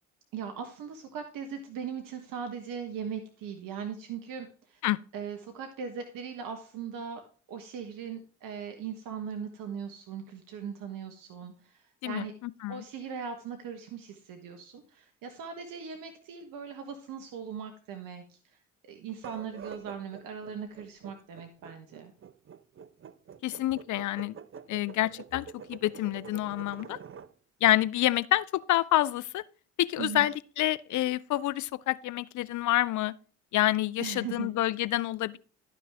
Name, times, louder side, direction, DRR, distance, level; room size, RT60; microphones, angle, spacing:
voice 1, 0.3-4.8 5.1-7.2 7.5-12.3 12.7-18.6 18.8-22.1 30.0-30.3 34.0-34.5, right 7 dB, 65° right, 1.3 m, -39 dB
voice 2, 12.0-12.8 23.4-24.3 24.7-27.0 27.6-29.4 29.8-33.1 33.5-35.4, left 15 dB, 55° left, 0.6 m, -28 dB
sound 1, 19.1-27.3, right 7 dB, 35° right, 0.7 m, -46 dB
11.5 x 6.1 x 3.5 m
hypercardioid pair, 55°, 35 cm